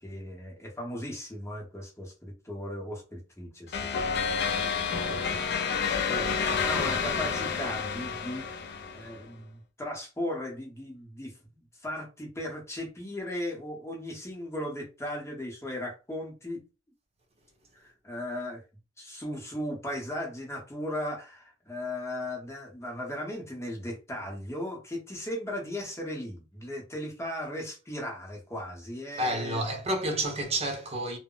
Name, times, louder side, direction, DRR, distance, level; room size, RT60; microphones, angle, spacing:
voice 1, 0.0-5.8 6.0-16.6 17.7-18.6 19.0-29.6, left 1 dB, 15° left, 0.9 m, -37 dB
sound 1, 3.7-9.2, left 6 dB, 60° left, 0.4 m, -29 dB
voice 2, 29.2-31.2, right 1 dB, 35° right, 0.7 m, -29 dB
2.1 x 2.0 x 3.7 m
head